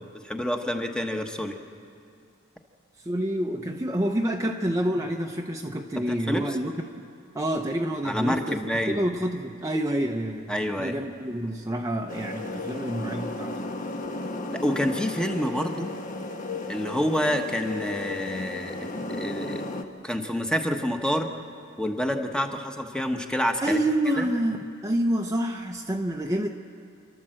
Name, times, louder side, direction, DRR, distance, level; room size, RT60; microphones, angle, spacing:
voice 1, 0.0-1.6 6.1-6.6 8.0-9.0 10.5-10.9 14.5-15.9 16.7-18.8 19.1-19.7 20.0-21.3 21.8-23.8 24.2-24.3, equal, 5° left, 4 dB, 1.1 m, -28 dB
voice 2, 3.0-7.1 7.3-10.5 10.8-13.6 23.6-26.5, right 1 dB, 15° right, 1 dB, 0.7 m, -28 dB
sound 1, 12.1-19.8, left 2 dB, 40° left, 1.0 m, -34 dB
29.0 x 12.0 x 7.7 m, 2.4 s
head